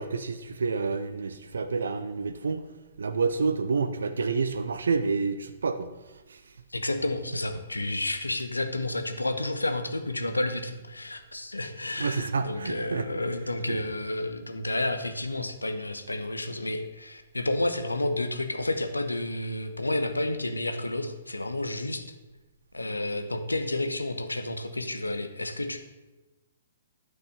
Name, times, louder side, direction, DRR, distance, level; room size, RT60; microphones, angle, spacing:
voice 1, 0.0-2.7 3.0-5.9 6.3-6.5 12.0-13.1 13.7-13.8, right 4 dB, 65° right, 9 dB, 0.7 m, -29 dB
voice 2, 6.7-22.0 22.7-25.8, left 2 dB, 80° left, 8 dB, 1.0 m, -30 dB
10.5 x 6.0 x 6.6 m, 1.1 s
figure-of-eight pair, 120°, 0 cm